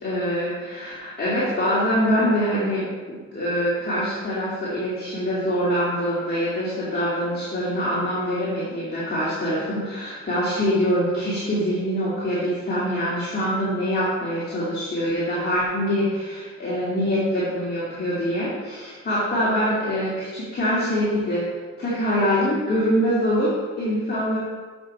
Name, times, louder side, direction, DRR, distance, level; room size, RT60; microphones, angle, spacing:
voice 1, 0.0-24.4, equal, 35° left, -8 dB, 2.5 m, -24 dB
8.0 x 6.2 x 4.2 m, 1.5 s
cardioid pair, 90°, 30 cm